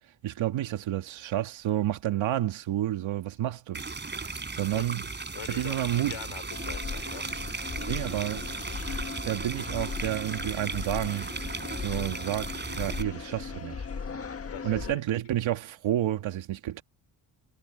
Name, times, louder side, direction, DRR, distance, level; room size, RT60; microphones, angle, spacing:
voice 1, 0.2-3.8 4.1-5.0 5.5-6.1 7.8-8.5 9.3-11.3 11.8-13.8 14.6-16.8, right 12 dB, 90° right, 2.1 m, -30 dB
sound 1, 3.7-13.0, right 4 dB, 25° right, 4.0 m, -36 dB
voice 2, 5.3-7.2 14.5-15.2, left 11 dB, 80° left, 5.3 m, -43 dB
sound 2, 6.5-14.9, left 5 dB, 30° left, 1.6 m, -38 dB
cardioid pair, 120°, 45 cm